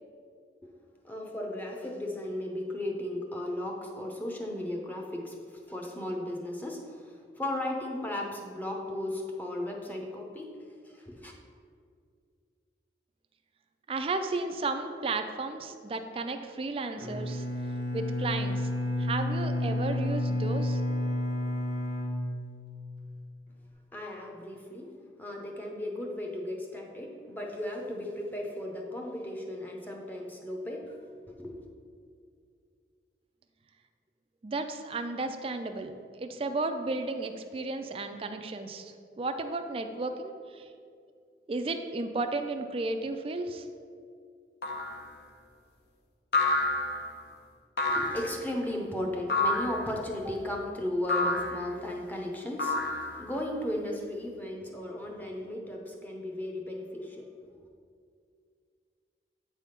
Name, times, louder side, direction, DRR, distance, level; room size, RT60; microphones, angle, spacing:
voice 1, 1.0-10.5 10.8-11.3 23.9-24.9 25.2-30.9 31.3-31.6 47.9-57.2, left 1 dB, 10° left, 0 dB, 0.7 m, -36 dB
voice 2, 13.9-17.4 17.9-18.7 19.0-20.8 34.4-40.7 41.5-43.7, right 3 dB, 30° right, 7 dB, 0.4 m, -33 dB
Bowed string instrument, 17.0-23.0, left 1 dB, 85° left, 1.2 m, -31 dB
sound 1, 44.6-45.0 46.3-47.1 47.8-48.4 49.3-49.8 51.1-51.6 52.6-53.3, left 2 dB, 60° left, 0.8 m, -28 dB
8.2 x 3.5 x 5.7 m, 2.3 s
head